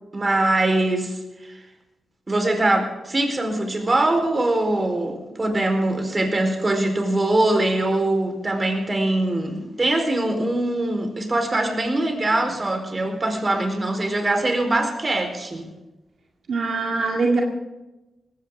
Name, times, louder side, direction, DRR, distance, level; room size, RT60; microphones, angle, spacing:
voice 1, 0.1-1.7 2.3-15.7, right 2 dB, 35° right, 4 dB, 4.3 m, -22 dB
voice 2, 16.5-17.4, right 3 dB, 70° right, 0 dB, 2.1 m, -22 dB
19.5 x 16.5 x 3.8 m, 1.0 s
cardioid pair, 60°, 0 cm